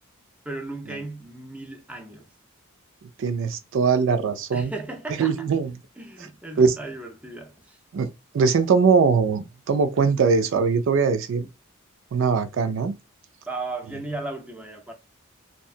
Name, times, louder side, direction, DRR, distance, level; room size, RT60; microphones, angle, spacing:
voice 1, 0.4-2.3 4.5-5.5 6.0-7.8 13.5-14.9, right 2 dB, 5° right, 0.5 m, -35 dB
voice 2, 3.2-4.7 5.2-5.7 6.6-6.7 7.9-8.1 8.3-11.5 12.1-12.9, right 5 dB, 65° right, 0.4 m, -21 dB
2.7 x 2.2 x 2.3 m
head